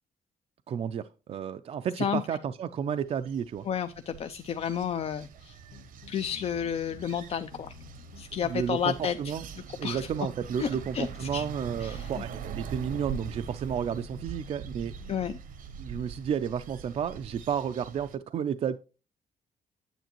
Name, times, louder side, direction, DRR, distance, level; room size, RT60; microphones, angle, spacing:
voice 1, 0.7-3.7 8.4-9.4 9.8-14.9 15.8-18.8, right 8 dB, 45° right, 0.4 m, -32 dB
sound 1, 2.9-18.2, right 6 dB, 75° right, 0.8 m, -43 dB
voice 2, 3.7-5.6 6.1-7.7 8.2-9.3 9.8-10.1 10.6-11.4 11.8-12.2 15.1-15.4, left 8 dB, 45° left, 0.4 m, -31 dB
sound 2, 5.7-7.2 7.5-8.8 9.3-9.6 9.9-12.0 12.3-13.6 14.1-14.4 14.7-15.3, left 3 dB, 85° left, 1.2 m, -50 dB
9.2 x 8.0 x 2.9 m
cardioid pair, 140°, 14 cm